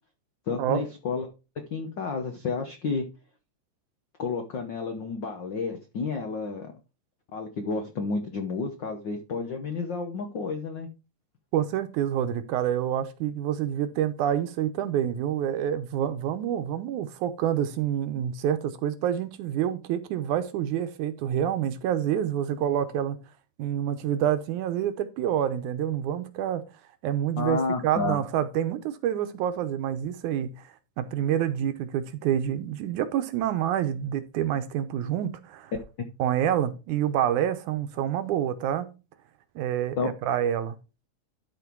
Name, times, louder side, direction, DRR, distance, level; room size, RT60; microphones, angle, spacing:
voice 1, 0.5-1.3 1.7-3.1 4.2-6.7 7.3-10.9 27.4-28.2 40.0-40.1, left 4 dB, 90° left, 1.0 m, -31 dB
voice 2, 11.5-23.2 23.6-26.6 27.0-30.6 31.0-35.7 36.2-38.9 39.6-40.8, right 10 dB, 75° right, 2.2 m, -27 dB
12.5 x 4.4 x 4.5 m
omnidirectional pair, 3.7 m